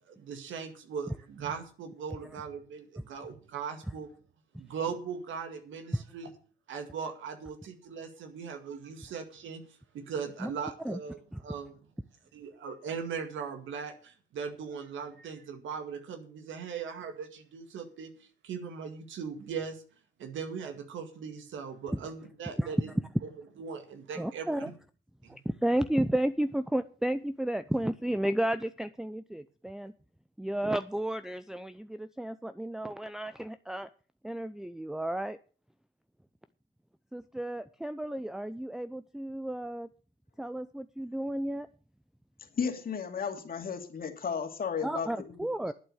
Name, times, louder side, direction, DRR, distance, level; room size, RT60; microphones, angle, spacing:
voice 1, 0.1-4.1 4.6-6.3 6.7-11.8 12.3-19.8 20.2-22.9 23.2-23.3 23.6-24.7 25.2-25.4, right 6 dB, 75° right, 7 dB, 2.1 m, -39 dB
voice 2, 24.2-24.7 25.3-29.9 30.4-33.9 34.2-35.4 37.1-39.9 40.4-41.7 44.8-45.7, right 1 dB, ahead, 9 dB, 0.5 m, -32 dB
voice 3, 42.6-45.1, left 6 dB, 50° left, 5 dB, 2.4 m, -33 dB
11.5 x 8.7 x 6.4 m, 0.40 s
cardioid pair, 90°, 20 cm